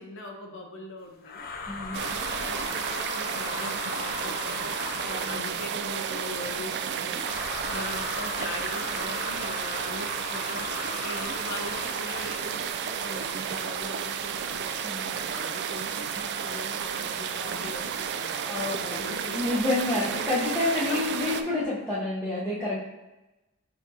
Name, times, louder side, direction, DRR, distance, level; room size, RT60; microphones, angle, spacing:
voice 1, 0.0-1.4 1.9-7.4 7.7-14.7 15.3-19.6 20.0-20.2 20.9-21.6, left 2 dB, 60° left, 2 dB, 0.8 m, -41 dB
sound 1, 1.2-5.8 7.1-12.6, left 4 dB, 45° left, 0.4 m, -37 dB
voice 2, 1.7-2.1 5.0-5.4 14.8-15.3 17.4-17.7 18.4-19.0 19.3-22.8, left 2 dB, 10° left, -10 dB, 0.8 m, -29 dB
sound 2, 1.9-21.4, right 7 dB, 55° right, 0.3 m, -32 dB
7.0 x 2.8 x 2.7 m, 1.0 s
head